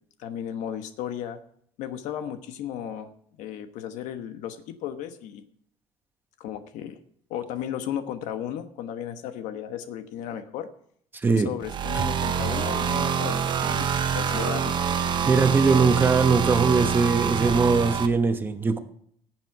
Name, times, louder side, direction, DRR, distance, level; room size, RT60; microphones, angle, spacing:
voice 1, 0.2-1.4 1.8-3.1 3.4-5.4 6.4-7.0 7.3-10.7 11.3-13.9 14.1-14.8, left 10 dB, 80° left, 9 dB, 1.2 m, -34 dB
voice 2, 11.2-11.5 15.3-18.8, right 4 dB, 15° right, 8 dB, 1.1 m, -21 dB
sound 1, 11.6-18.1, right 7 dB, 35° right, 1.0 m, -26 dB
sound 2, 12.2-17.9, left 4 dB, 40° left, 2.1 m, -47 dB
17.5 x 7.6 x 4.8 m, 0.64 s
cardioid pair, 150°, 13 cm